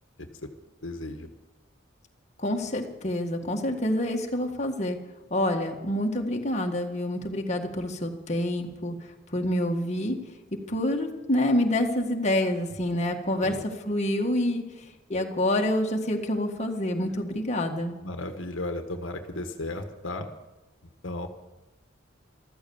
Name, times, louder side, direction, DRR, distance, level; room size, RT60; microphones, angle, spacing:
voice 1, 0.2-0.5 0.8-1.3 13.4-13.6 18.0-20.3 21.0-21.3, left 2 dB, 75° left, 6 dB, 1.5 m, -35 dB
voice 2, 2.4-5.0 5.3-9.0 9.3-10.2 10.7-13.6 13.9-14.6 15.1-18.0, left 1 dB, 35° left, 1 dB, 1.9 m, -27 dB
14.5 x 13.5 x 7.1 m, 1.1 s
head